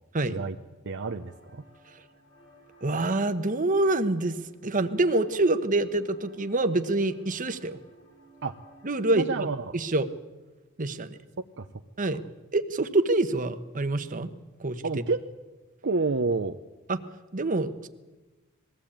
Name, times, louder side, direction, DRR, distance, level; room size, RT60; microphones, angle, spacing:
voice 1, 0.9-1.6 8.4-8.5 9.1-9.7 11.6-11.7 14.8-15.2 15.8-16.6, right 3 dB, 60° right, 6 dB, 0.8 m, -29 dB
sound 1, 1.0-9.2, right 1 dB, 70° left, 5.7 m, -56 dB
voice 2, 2.8-4.4 4.6-7.8 8.8-9.5 9.7-10.1 10.8-11.1 12.0-12.2 12.5-14.3 14.6-14.8 16.9-17.0 17.3-17.9, right 2 dB, 40° right, 9 dB, 1.2 m, -26 dB
21.5 x 15.5 x 8.8 m, 1.2 s
head